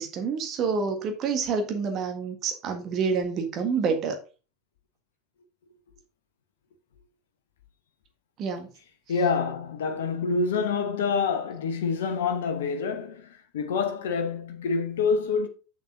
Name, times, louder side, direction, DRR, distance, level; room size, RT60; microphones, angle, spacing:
voice 1, 0.0-4.2 8.4-8.7, right 5 dB, 40° right, 1.7 m, -28 dB
voice 2, 9.1-15.5, left 5 dB, 65° left, 1.0 m, -27 dB
7.2 x 7.0 x 3.8 m
figure-of-eight pair, 75°, 0 cm